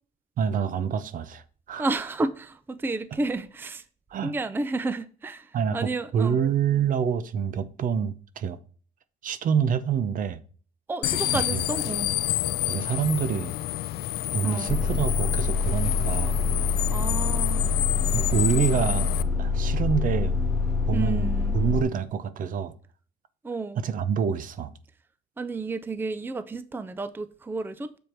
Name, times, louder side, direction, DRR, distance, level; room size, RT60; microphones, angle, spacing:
voice 1, 0.4-1.4 1.7-1.9 4.1-4.3 5.5-8.6 9.2-10.4 11.3-11.6 12.7-13.5 14.3-16.4 18.1-19.1 19.4-20.4 20.9-22.7 23.8-24.7, right 7 dB, 55° right, 0.7 m, -26 dB
voice 2, 1.7-3.8 4.2-6.4 10.9-12.1 14.4-14.8 16.9-17.7 20.9-21.6 23.4-23.8 25.4-28.0, right 3 dB, 10° right, 0.5 m, -31 dB
sound 1, 11.0-19.2, left 15 dB, 65° left, 0.4 m, -29 dB
sound 2, 14.7-21.8, left 4 dB, 15° left, 2.3 m, -26 dB
7.0 x 4.7 x 4.4 m
cardioid pair, 110°, 17 cm